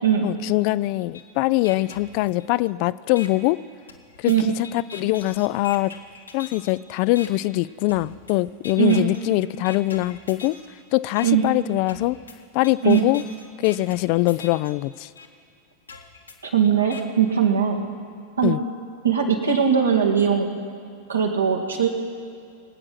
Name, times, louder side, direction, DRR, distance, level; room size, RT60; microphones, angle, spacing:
voice 1, 0.2-3.6 4.2-5.9 6.3-10.6 10.9-12.2 12.5-13.2 13.6-15.1 18.4-18.6, left 19 dB, 45° left, 18 dB, 0.3 m, -22 dB
sound 1, 1.1-1.2 1.6-2.7 3.2-3.3 3.9-6.7 7.2-7.3 7.9-8.3 8.6-9.2 9.6-10.7 11.2-11.3 11.9-14.7 15.2-15.3 15.9-17.0, left 5 dB, 75° left, 1.3 m, -42 dB
voice 2, 16.4-17.8 18.4-18.6 19.0-20.5 21.1-21.9, right 8 dB, 75° right, 2 dB, 1.9 m, -20 dB
24.5 x 8.7 x 6.0 m, 2.4 s
figure-of-eight pair, 90°, 0 cm